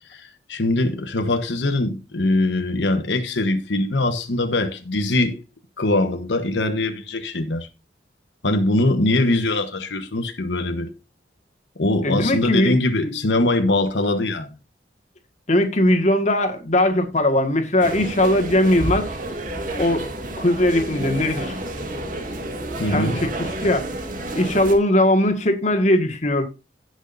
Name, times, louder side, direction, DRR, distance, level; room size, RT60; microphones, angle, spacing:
voice 1, 0.1-5.4 5.8-7.7 8.4-10.9 11.8-14.5 22.8-23.3, left 2 dB, 85° left, 1.2 m, -22 dB
voice 2, 12.0-12.8 13.0-13.1 15.5-19.1 19.8-20.1 20.4-21.6 22.9-23.8 24.4-26.4, left 1 dB, 40° left, 1.8 m, -19 dB
sound 1, 17.8-24.7, right 1 dB, 45° right, 2.4 m, -30 dB
17.0 x 6.3 x 2.7 m
head